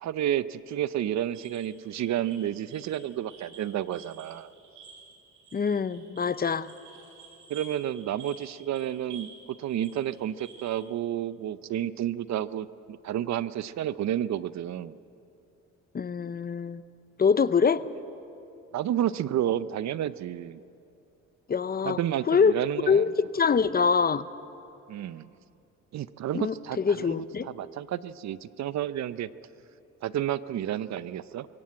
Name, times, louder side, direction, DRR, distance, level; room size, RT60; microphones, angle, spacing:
voice 1, 0.0-4.5 7.5-9.3 9.6-15.0 18.7-20.6 21.8-23.1 24.9-25.3 25.9-27.2 27.4-29.3 30.0-31.5, right 11 dB, 65° right, 16 dB, 0.6 m, -31 dB
sound 1, 1.3-9.4 9.7-10.8, right 5 dB, 80° right, 7.2 m, -51 dB
voice 2, 5.5-6.7 15.9-16.8 17.2-17.8 21.5-22.0 22.3-22.5 22.9-24.3 26.3-27.5, left 6 dB, 30° left, 15 dB, 0.7 m, -24 dB
22.5 x 16.5 x 8.8 m, 2.7 s
cardioid pair, 90°, 30 cm